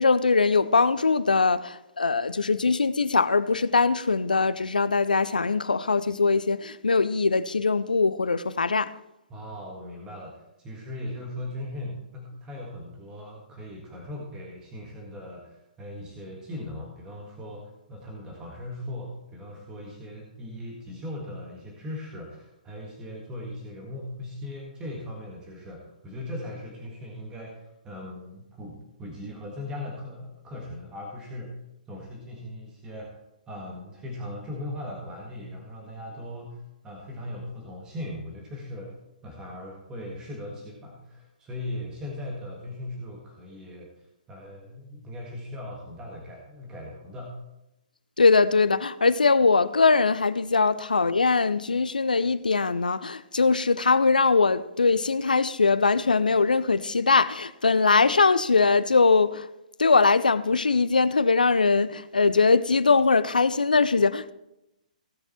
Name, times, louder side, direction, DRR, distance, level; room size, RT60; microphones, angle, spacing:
voice 1, 0.0-8.9 48.2-59.5 59.8-64.3, left 4 dB, 75° left, 0.5 m, -21 dB
voice 2, 9.3-31.6 31.9-33.2 33.5-39.0 39.2-47.4, left 1 dB, 15° right, 1.7 m, -39 dB
16.5 x 6.5 x 4.4 m
figure-of-eight pair, 125°, 5 cm